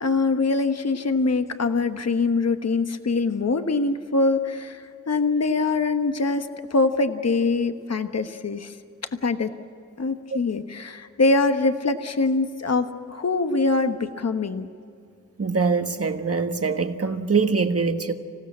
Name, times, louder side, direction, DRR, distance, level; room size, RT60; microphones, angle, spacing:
voice 1, 0.0-8.7 9.1-9.5 10.0-14.7, left 3 dB, 50° left, 1.2 m, -23 dB
voice 2, 15.4-18.1, right 4 dB, 45° right, 1.5 m, -23 dB
26.0 x 16.5 x 7.5 m
wide cardioid pair, 75°, 33 cm